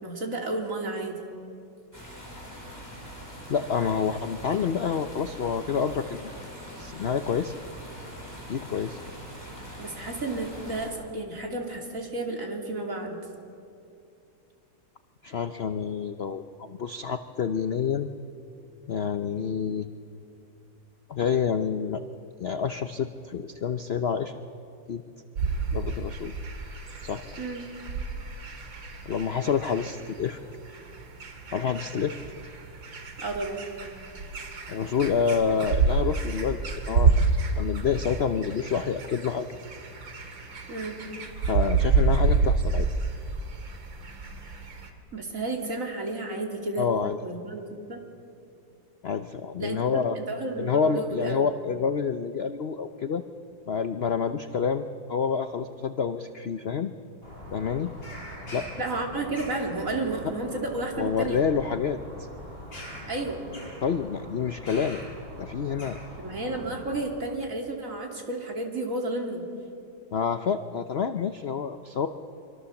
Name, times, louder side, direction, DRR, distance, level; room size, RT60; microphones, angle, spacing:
voice 1, 0.0-1.2 9.8-13.2 27.4-27.6 33.2-33.6 40.7-41.0 45.1-46.8 47.2-48.0 49.6-51.5 58.8-61.4 63.1-63.4 66.2-69.4, right 2 dB, 45° right, 0 dB, 3.3 m, -32 dB
sound 1, 1.9-10.9, equal, 10° left, 5.6 m, -42 dB
voice 2, 3.5-6.5 6.8-7.5 8.5-9.0 15.2-18.1 18.9-19.9 21.1-22.0 22.4-24.3 24.9-25.0 25.7-26.3 27.0-27.2 29.1-30.4 31.5-32.2 34.7-37.1 37.6-39.5 41.4-42.9 46.8-47.2 49.0-50.2 50.6-53.2 53.7-56.9 57.5-57.9 58.5-58.7 61.0-62.0 63.8-65.0 65.4-66.0 70.1-72.1, left 6 dB, 70° left, 8 dB, 0.6 m, -28 dB
sound 2, 25.4-44.9, right 4 dB, 80° right, 2.8 m, -29 dB
Bird vocalization bird call bird song, 57.2-67.0, left 1 dB, 30° left, 6.7 m, -42 dB
25.0 x 24.5 x 7.1 m, 2.6 s
omnidirectional pair, 2.1 m